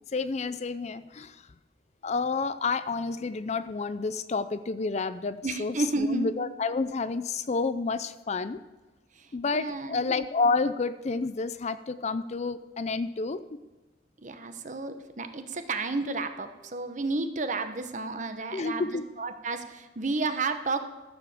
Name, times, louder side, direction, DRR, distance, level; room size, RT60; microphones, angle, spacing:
voice 1, 0.1-1.5 2.0-8.6 9.3-13.6 18.5-19.1, left 4 dB, 40° left, 13 dB, 0.4 m, -30 dB
voice 2, 5.4-6.4 9.2-10.2 14.2-20.8, right 3 dB, 45° right, 9 dB, 1.0 m, -32 dB
14.0 x 7.2 x 7.0 m, 1.2 s
head